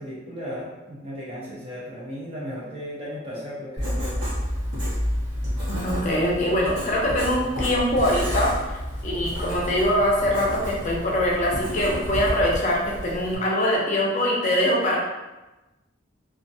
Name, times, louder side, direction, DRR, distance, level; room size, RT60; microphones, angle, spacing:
voice 1, 0.0-4.2, equal, 30° right, -8 dB, 0.9 m, -35 dB
Writing, 3.8-13.4, equal, 65° right, 1.0 m, -30 dB
voice 2, 5.7-15.0, equal, 40° left, -3 dB, 0.6 m, -23 dB
2.4 x 2.1 x 2.7 m, 1.1 s
head